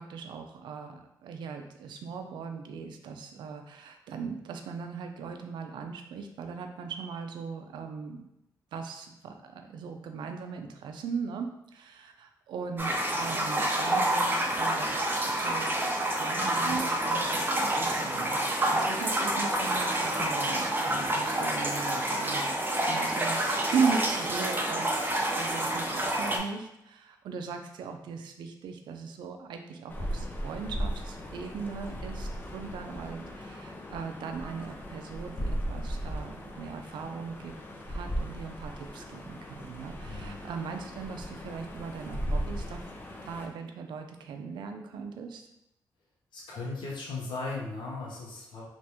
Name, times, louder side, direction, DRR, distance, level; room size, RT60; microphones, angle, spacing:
voice 1, 0.0-8.2 8.7-15.0 15.3-15.8 16.2-25.1 25.3-37.5 37.9-42.9 43.2-45.5, right 5 dB, 90° right, 5 dB, 0.4 m, -38 dB
sound 1, 12.8-26.4, right 1 dB, 25° right, 0.6 m, -28 dB
sound 2, 29.9-43.5, equal, 25° left, 0.5 m, -37 dB
voice 2, 40.0-40.4 46.3-48.7, left 3 dB, 80° left, -4 dB, 0.8 m, -37 dB
2.8 x 2.5 x 3.4 m, 0.85 s
cardioid pair, 75°, 8 cm